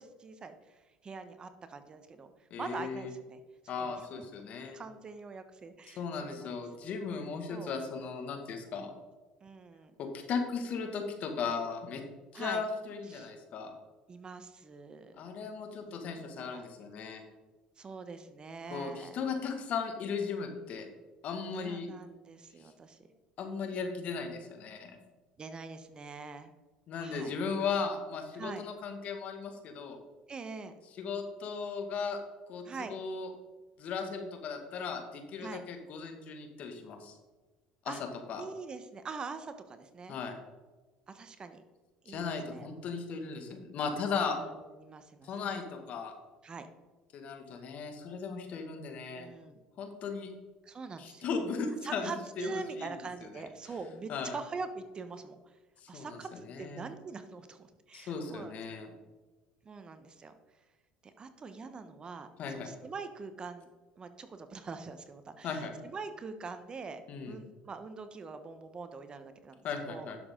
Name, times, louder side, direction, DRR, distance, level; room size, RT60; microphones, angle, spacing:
voice 1, 0.0-3.4 3.8-4.3 4.7-6.5 7.5-7.7 9.4-9.9 12.3-12.6 13.1-13.3 14.1-15.1 15.9-16.6 17.8-19.2 21.5-23.0 23.8-24.1 25.4-26.5 27.0-27.3 28.3-28.6 30.3-30.7 32.6-33.0 35.4-35.6 37.9-38.0 38.4-40.2 41.1-41.6 42.0-42.7 44.4-45.3 46.4-46.7 49.1-49.6 50.6-51.3 51.8-55.6 55.9-58.6 59.6-60.3 61.2-62.3 62.5-70.1, right 4 dB, 30° right, 9 dB, 1.0 m, -44 dB
voice 2, 2.5-3.1 3.7-4.8 5.9-8.9 10.0-12.0 12.3-13.7 15.2-17.2 18.7-20.9 21.2-21.9 23.4-25.0 26.9-30.0 31.0-32.2 32.5-32.6 32.9-33.3 33.8-37.1 37.8-37.9 38.3-38.4 40.1-40.3 42.1-44.4 45.2-46.1 47.1-49.3 49.8-50.3 51.0-52.9 53.2-53.4 54.1-54.4 55.8-56.2 56.5-56.9 57.9-58.9 62.4-62.7 65.4-65.7 67.1-67.3 69.6-70.2, left 5 dB, 55° left, 5 dB, 1.9 m, -37 dB
11.0 x 7.1 x 3.8 m, 1.2 s
supercardioid pair, 85°, 3 cm